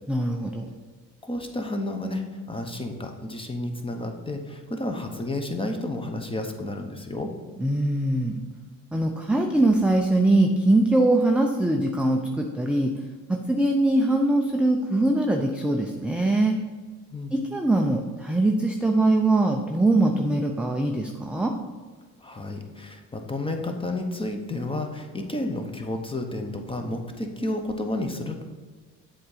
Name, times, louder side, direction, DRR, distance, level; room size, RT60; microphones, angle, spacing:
voice 1, 0.1-0.7 7.6-8.4 8.9-12.9 13.3-16.6 17.3-21.5, right 2 dB, 5° right, 2 dB, 0.4 m, -22 dB
voice 2, 1.2-7.3 17.1-17.3 22.2-28.4, left 1 dB, 15° left, 4 dB, 0.9 m, -31 dB
7.8 x 3.7 x 4.9 m, 1.4 s
supercardioid pair, 75°, 38 cm